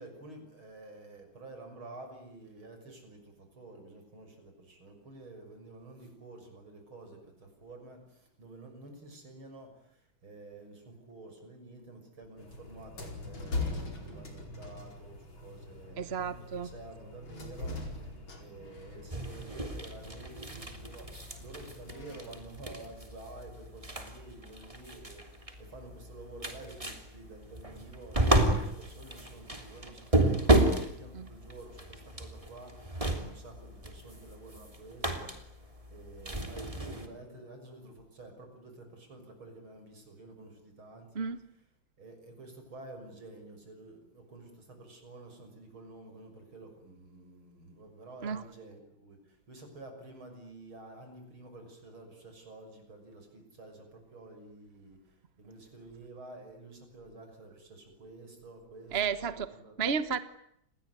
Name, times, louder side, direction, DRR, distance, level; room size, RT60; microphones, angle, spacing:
voice 1, 0.0-41.2 42.0-59.9, right 2 dB, 75° right, 5 dB, 7.4 m, -50 dB
sound 1, 12.4-22.4, left 3 dB, 70° left, 5.5 m, -42 dB
voice 2, 16.0-16.7 31.2-31.3 41.1-41.4 48.2-48.4 58.9-59.5 59.8-60.2, right 6 dB, 35° right, 13 dB, 1.2 m, -32 dB
sound 2, 19.1-37.1, right 1 dB, 15° right, 3.3 m, -32 dB
29.0 x 21.0 x 9.6 m, 0.75 s
omnidirectional pair, 2.3 m